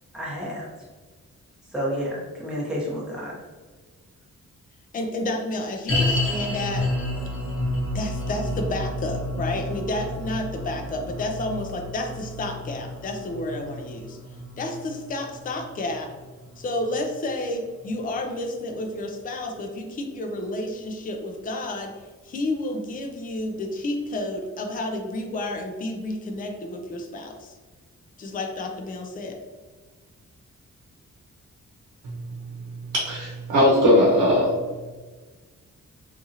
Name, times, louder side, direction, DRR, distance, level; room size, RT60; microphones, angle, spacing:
voice 1, 0.1-0.7 1.7-3.3, equal, ahead, -6 dB, 0.9 m, -30 dB
voice 2, 4.9-6.9 7.9-14.2 14.6-16.1 16.6-21.9 22.2-27.6 28.2-29.4, left 1 dB, 30° left, 3 dB, 0.4 m, -30 dB
sound 1, 5.9-17.2 17.4-17.5 18.2-18.3, left 1 dB, 45° left, 0.8 m, -30 dB
voice 3, 32.9-34.5, left 1 dB, 75° right, -4 dB, 0.8 m, -19 dB
2.7 x 2.5 x 2.7 m, 1.3 s
wide cardioid pair, 140°, 30 cm